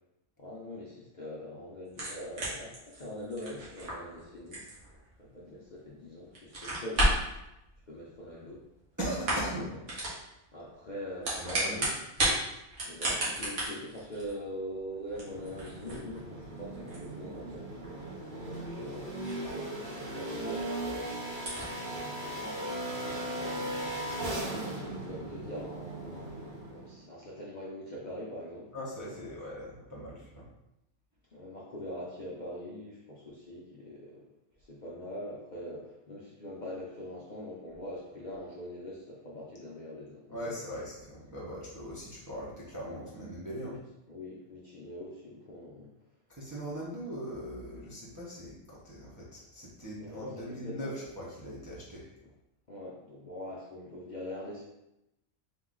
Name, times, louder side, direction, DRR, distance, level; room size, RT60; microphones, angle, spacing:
voice 1, 0.4-4.6 5.2-7.2 7.9-8.6 9.3-9.4 10.5-11.9 12.8-17.9 18.3-23.9 24.3-28.7 29.2-29.3 31.3-34.2 34.6-40.6 43.7-43.8 44.1-45.9 50.0-51.0 52.7-54.6, left 1 dB, 45° left, -6 dB, 0.6 m, -43 dB
sound 1, 1.9-5.9 6.3-7.3 8.4-8.8 9.1-9.6 9.9-10.2 11.0-12.4 12.7-19.7 20.1-20.2 20.6-20.7 20.9-21.0 21.3-21.7, right 1 dB, 60° right, 1.5 m, -33 dB
voice 2, 9.0-9.8 11.4-11.9 28.7-30.5 40.3-43.8 46.3-52.1, equal, 20° right, -6 dB, 0.6 m, -40 dB
sound 2, 15.1-27.0, right 1 dB, 40° right, 1.0 m, -38 dB
3.7 x 2.9 x 3.7 m, 0.88 s
omnidirectional pair, 1.4 m